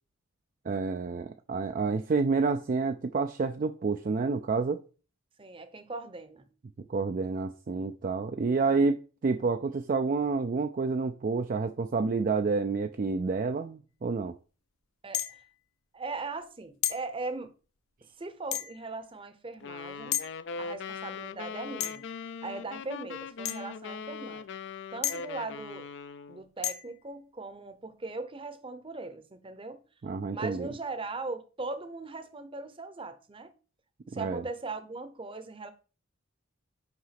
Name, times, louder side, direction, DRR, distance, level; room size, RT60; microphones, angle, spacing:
voice 1, 0.7-4.8 6.9-14.3 30.0-30.7 34.1-34.4, right 4 dB, 40° right, 0.4 m, -29 dB
voice 2, 5.4-6.5 15.0-15.4 15.9-17.5 18.2-20.3 20.5-22.1 22.4-24.4 24.9-25.9 26.3-29.8 30.3-33.5 34.1-35.7, right 3 dB, 25° right, 0.7 m, -39 dB
sound 1, 15.1-15.5 16.8-17.1 18.5-18.9 20.1-20.3 21.8-22.2 23.5-23.7 25.0-25.4 26.6-27.0, left 11 dB, 90° left, 0.8 m, -33 dB
sound 2, 19.6-26.4, left 5 dB, 55° left, 0.4 m, -40 dB
5.8 x 4.9 x 5.8 m
head